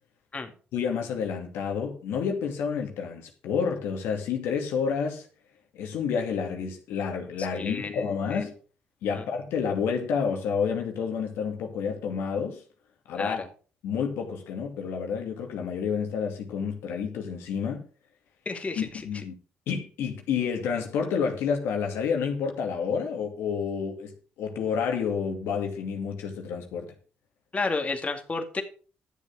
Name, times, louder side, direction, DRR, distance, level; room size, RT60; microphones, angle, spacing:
voice 1, 0.7-5.3 5.7-8.5 9.0-12.6 13.1-13.4 13.8-17.8 18.8-19.4 19.7-24.1 24.4-26.9, left 6 dB, 85° left, 2.4 m, -29 dB
voice 2, 7.5-8.5 9.1-9.2 13.1-13.5 18.5-19.2 27.5-28.6, left 3 dB, 35° left, 2.2 m, -32 dB
11.5 x 7.3 x 6.1 m
supercardioid pair, 70°, 4 cm